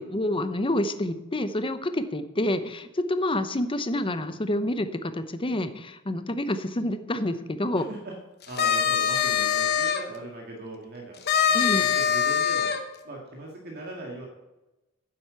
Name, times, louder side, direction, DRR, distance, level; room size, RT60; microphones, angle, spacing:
voice 1, 0.0-7.9 11.5-11.8, left 1 dB, 25° left, 10 dB, 0.8 m, -28 dB
voice 2, 7.8-8.1 8.5-11.2 11.5-12.7 13.0-14.3, right 2 dB, 50° right, -1 dB, 2.0 m, -39 dB
sound 1, 8.4-10.0 11.3-12.8, left 8 dB, 50° left, 1.1 m, -23 dB
10.0 x 7.8 x 6.8 m, 1.0 s
head